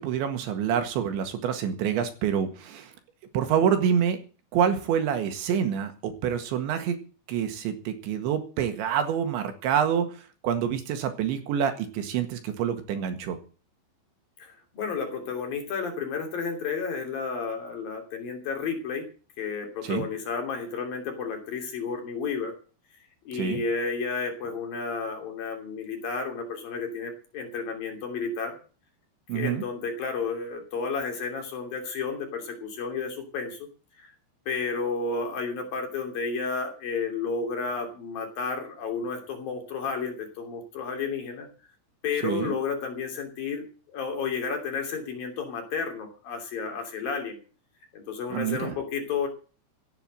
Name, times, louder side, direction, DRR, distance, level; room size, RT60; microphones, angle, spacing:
voice 1, 0.0-2.9 3.3-4.2 4.5-7.0 7.3-10.1 10.4-13.4 19.8-20.1 23.3-23.6 29.3-29.6 42.2-42.6 48.3-48.8, right 8 dB, 70° right, 8 dB, 3.9 m, -27 dB
voice 2, 14.4-19.1 19.4-22.5 23.3-28.6 29.3-33.7 34.0-34.1 34.5-41.5 42.0-47.4 47.9-49.3, left 5 dB, 50° left, 4 dB, 4.4 m, -32 dB
16.5 x 9.1 x 7.7 m, 0.37 s
omnidirectional pair, 5.6 m